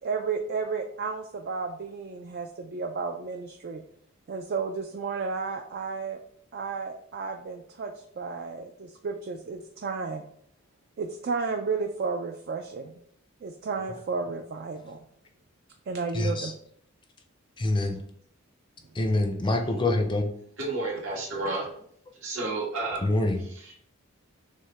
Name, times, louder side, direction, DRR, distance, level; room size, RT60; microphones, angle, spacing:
voice 1, 0.0-3.8 4.3-6.2 6.5-10.2 11.0-13.0 13.4-15.0 15.9-16.5, right 4 dB, 50° right, 4 dB, 0.4 m, -32 dB
voice 2, 16.1-16.5 17.6-18.0 18.9-20.3 23.0-23.4, left 2 dB, 25° left, 4 dB, 0.5 m, -25 dB
voice 3, 20.6-21.7 22.1-23.0 23.5-23.7, right 2 dB, 75° right, -3 dB, 1.6 m, -31 dB
6.2 x 2.1 x 3.4 m, 0.64 s
head